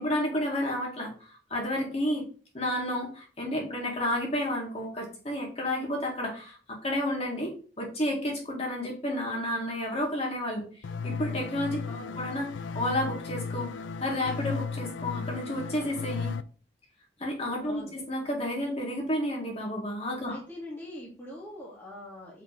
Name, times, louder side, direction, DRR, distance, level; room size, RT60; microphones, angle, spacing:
voice 1, 0.0-2.2 2.5-10.6 11.0-11.8 12.2-12.5 12.7-16.3 17.2-20.4, left 1 dB, 35° left, -1 dB, 2.0 m, -31 dB
sound 1, 10.8-16.4, left 4 dB, 85° left, 0.4 m, -35 dB
voice 2, 11.8-12.2 17.6-17.9 20.2-22.4, left 1 dB, 10° left, -6 dB, 1.6 m, -43 dB
5.9 x 3.4 x 5.1 m, 0.39 s
head